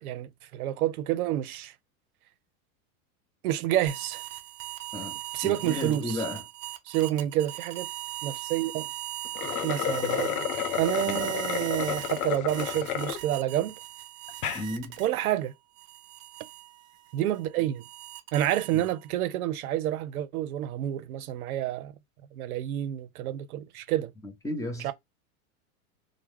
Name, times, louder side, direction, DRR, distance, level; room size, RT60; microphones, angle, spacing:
voice 1, 0.0-1.7 3.4-4.2 5.3-6.2 6.9-7.9 8.2-8.9 9.6-10.5 10.8-13.8 15.0-15.5 17.1-17.8 18.3-21.9 22.3-24.1 24.8-24.9, right 12 dB, 85° right, 0.5 m, -29 dB
sound 1, 3.9-15.3 15.8-19.1, right 13 dB, 30° right, 0.4 m, -39 dB
voice 2, 5.4-6.4 11.0-11.3 14.5-14.9 24.2-24.9, left 1 dB, 10° left, 0.6 m, -34 dB
sound 2, 9.2-13.2 13.7-13.8 14.3-14.6, left 10 dB, 85° left, 0.6 m, -31 dB
2.2 x 2.0 x 3.1 m
hypercardioid pair, 115°, 43 cm